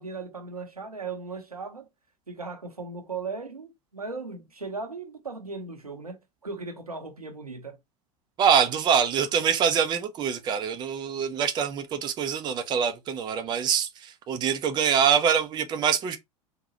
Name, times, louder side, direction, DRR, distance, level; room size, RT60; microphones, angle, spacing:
voice 1, 0.0-1.9 2.3-7.8, right 4 dB, 85° right, 0.7 m, -37 dB
voice 2, 8.4-16.2, right 7 dB, 25° right, 0.5 m, -24 dB
3.8 x 2.3 x 2.9 m
figure-of-eight pair, 85°, 19 cm